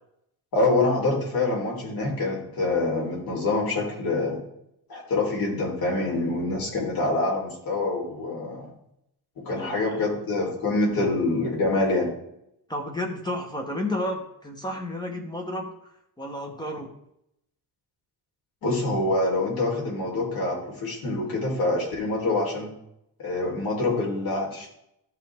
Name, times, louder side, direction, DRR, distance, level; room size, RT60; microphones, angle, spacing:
voice 1, 0.5-4.4 4.9-8.7 9.4-12.1 18.6-22.7 23.2-24.7, left 2 dB, 65° left, -2 dB, 4.0 m, -26 dB
voice 2, 9.5-10.0 12.7-15.7 16.2-16.9, left 1 dB, 10° left, 3 dB, 1.1 m, -32 dB
13.5 x 5.6 x 3.5 m, 0.78 s
cardioid pair, 160°, 38 cm